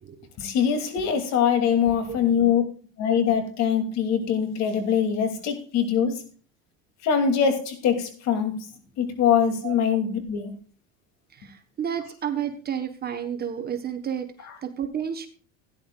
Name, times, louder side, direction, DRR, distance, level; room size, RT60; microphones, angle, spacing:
voice 1, 0.4-2.6 3.0-6.3 7.0-8.7 9.0-10.5, left 7 dB, 60° left, 2.8 m, -23 dB
voice 2, 11.3-15.3, right 8 dB, 30° right, 1.2 m, -31 dB
16.5 x 10.5 x 2.4 m
supercardioid pair, 125°, 31 cm